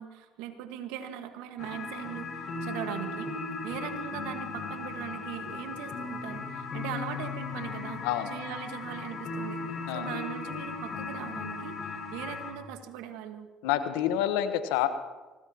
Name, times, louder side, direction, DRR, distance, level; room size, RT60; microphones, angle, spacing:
voice 1, 0.0-3.4 3.6-9.6 9.9-13.5, right 10 dB, 80° right, 7 dB, 1.6 m, -40 dB
sound 1, 1.6-12.5, left 4 dB, 50° left, 6.0 m, -37 dB
voice 2, 13.6-14.9, left 11 dB, 85° left, 10 dB, 1.1 m, -28 dB
25.0 x 18.5 x 2.9 m, 1.3 s
hypercardioid pair, 65°, 0 cm